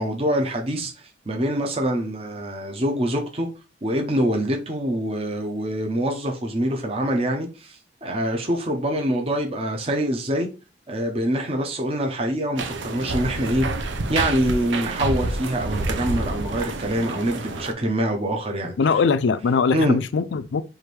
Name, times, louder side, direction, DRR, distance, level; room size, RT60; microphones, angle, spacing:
voice 1, 0.0-3.5 3.8-10.5 10.9-18.7 19.7-20.0, right 1 dB, 30° right, 0.7 m, -25 dB
sound 1, 12.6-17.7, right 2 dB, 85° right, 0.6 m, -28 dB
voice 2, 18.8-20.6, left 5 dB, 75° left, 0.4 m, -21 dB
4.6 x 2.6 x 3.2 m
head